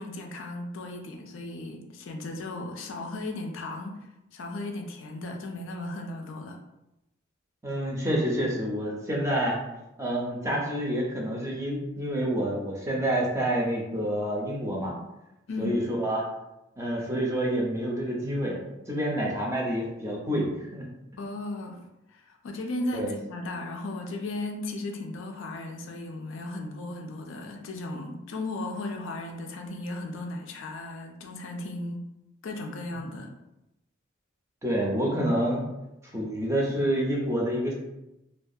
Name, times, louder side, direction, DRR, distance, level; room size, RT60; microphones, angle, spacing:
voice 1, 0.0-4.0 4.3-6.6 15.5-15.8 21.2-21.8 22.1-32.0 32.4-33.3, left 2 dB, 65° left, 3 dB, 0.4 m, -36 dB
voice 2, 7.6-9.6 10.0-14.9 15.6-16.2 16.8-20.9 22.9-23.1 33.0-33.1 34.6-35.6 36.1-37.7, equal, 15° right, -2 dB, 0.5 m, -28 dB
2.3 x 2.2 x 2.6 m, 0.91 s
head